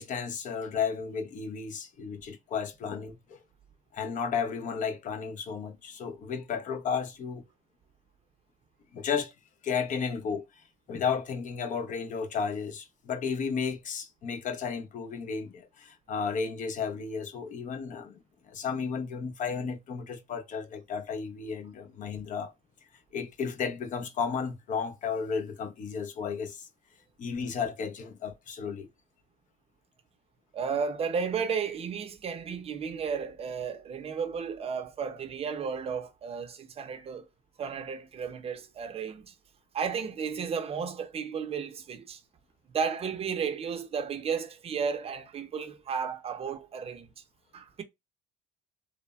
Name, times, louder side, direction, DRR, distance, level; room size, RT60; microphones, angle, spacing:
voice 1, 0.0-3.4 3.9-7.4 8.9-9.3 9.6-10.4 10.9-22.5 23.1-26.7 27.2-28.9, left 6 dB, 50° left, 0.6 m, -33 dB
voice 2, 30.5-37.2 37.6-39.3 39.7-42.2 42.7-47.1 47.5-47.8, right 6 dB, 35° right, 0.5 m, -33 dB
3.2 x 2.0 x 2.2 m
cardioid pair, 110°, 17 cm